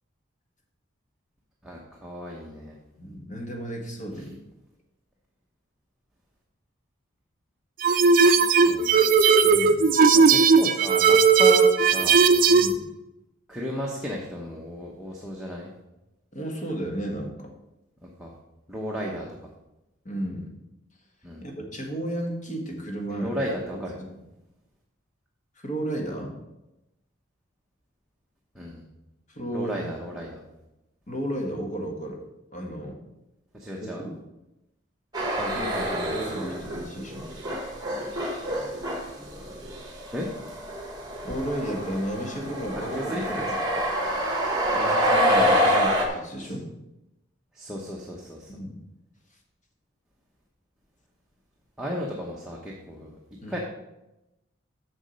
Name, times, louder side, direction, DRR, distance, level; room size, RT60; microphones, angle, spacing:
voice 1, 1.6-2.8 4.2-4.3 8.5-9.2 10.1-12.3 13.5-15.7 18.0-18.3 18.7-19.3 21.2-21.4 23.1-24.0 28.5-28.8 29.5-30.4 33.5-34.0 35.4-36.4 40.1-40.3 42.9-43.5 46.4-46.5 47.5-48.6 51.8-53.1 53.5-53.6, equal, 5° right, -4 dB, 0.9 m, -34 dB
voice 2, 3.0-4.4 9.4-9.9 12.5-12.8 16.3-17.5 20.0-20.5 21.4-23.3 23.7-23.8 25.6-26.4 29.3-29.9 31.1-32.2 32.5-33.0 33.8-34.1 36.1-37.2 41.2-43.8 44.7-46.7 48.5-48.7 53.4-53.6, right 1 dB, 35° left, 1 dB, 1.4 m, -33 dB
sound 1, 7.8-12.7, right 5 dB, 45° right, 0.4 m, -17 dB
sound 2, 35.1-36.8 37.1-46.1, equal, 20° right, 1.4 m, -26 dB
7.2 x 6.5 x 5.2 m, 0.94 s
head